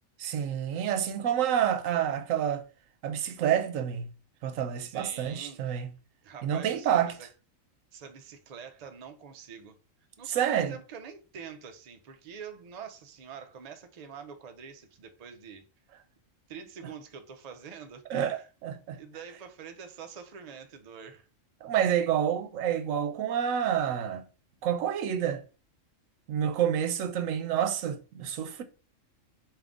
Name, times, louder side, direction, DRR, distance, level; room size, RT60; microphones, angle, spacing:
voice 1, 0.2-2.6 3.0-4.1 4.4-5.9 6.4-7.1 10.3-10.7 18.1-19.0 21.6-24.2 24.6-25.4 26.3-28.6, right 9 dB, 80° right, 1.0 m, -28 dB
voice 2, 4.8-5.8 6.2-7.3 7.9-9.7 10.2-15.7 16.5-18.0 18.4-18.5 19.0-21.3, right 7 dB, 60° right, 0.4 m, -45 dB
3.7 x 2.7 x 3.5 m
omnidirectional pair, 1.4 m